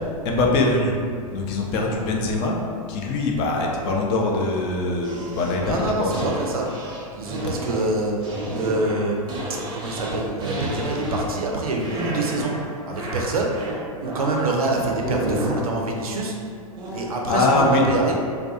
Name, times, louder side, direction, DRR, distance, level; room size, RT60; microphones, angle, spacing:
voice 1, 0.2-0.9 1.3-2.6 2.9-6.3 17.3-17.9, left 2 dB, 40° left, -1 dB, 0.4 m, -22 dB
sound 1, 5.0-11.5 11.8-12.6 12.9-14.5 14.9-15.7 16.8-17.0, right 1 dB, 25° right, 0.6 m, -31 dB
voice 2, 5.6-6.7 7.1-8.1 8.5-9.3 9.7-12.5 12.9-13.5 14.0-16.3 16.9-18.1, right 2 dB, 75° right, 0 dB, 0.5 m, -25 dB
2.3 x 2.3 x 2.6 m, 2.3 s
figure-of-eight pair, 95°, 19 cm